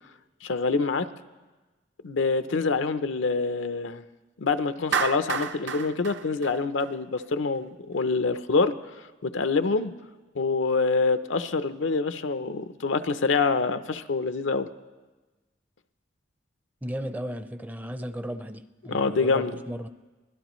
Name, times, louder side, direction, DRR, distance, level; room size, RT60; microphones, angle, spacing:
voice 1, 0.4-1.1 2.0-4.0 4.4-8.7 9.2-9.9 10.3-14.7 18.9-19.5, left 4 dB, 85° left, 11 dB, 0.6 m, -26 dB
Clapping, 4.9-7.2, right 6 dB, 65° right, 0.6 m, -30 dB
voice 2, 16.8-19.9, equal, 10° right, 11 dB, 0.4 m, -35 dB
23.5 x 16.5 x 3.1 m, 1.2 s
head